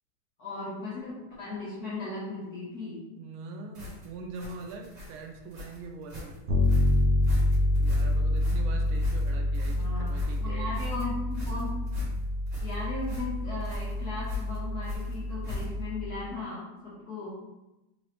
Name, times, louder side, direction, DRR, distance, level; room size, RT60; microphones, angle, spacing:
voice 1, 0.4-3.1 9.7-11.8 12.6-17.3, left 3 dB, 60° left, -7 dB, 1.2 m, -37 dB
voice 2, 3.2-6.4 7.7-10.8, right 4 dB, 90° right, 3 dB, 1.4 m, -43 dB
sound 1, 3.7-16.0, left 2 dB, 40° right, 1.3 m, -41 dB
Bass guitar, 6.5-16.2, left 1 dB, 65° right, 0.8 m, -28 dB
3.9 x 3.0 x 3.0 m, 0.97 s
omnidirectional pair, 2.3 m